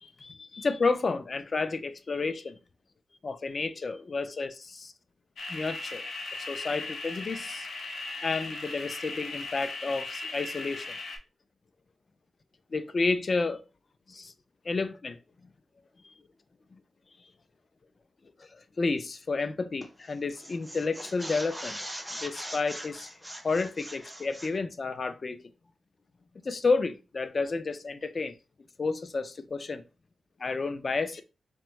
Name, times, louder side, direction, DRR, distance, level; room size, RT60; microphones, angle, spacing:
voice 1, 0.0-2.6 3.2-4.9 5.5-6.0 6.5-7.7 8.2-10.9 12.7-13.6 14.1-14.3 14.7-15.2 18.8-21.8 22.2-23.1 23.4-25.4 26.4-28.3 28.8-29.8 30.4-31.2, left 3 dB, 45° left, 0.4 m, -31 dB
sound 1, 5.4-11.2, left 3 dB, 85° left, 0.6 m, -38 dB
sound 2, 19.8-20.1 20.3-24.6, equal, 5° right, 0.5 m, -41 dB
3.3 x 2.2 x 3.0 m
wide cardioid pair, 90°, 0 cm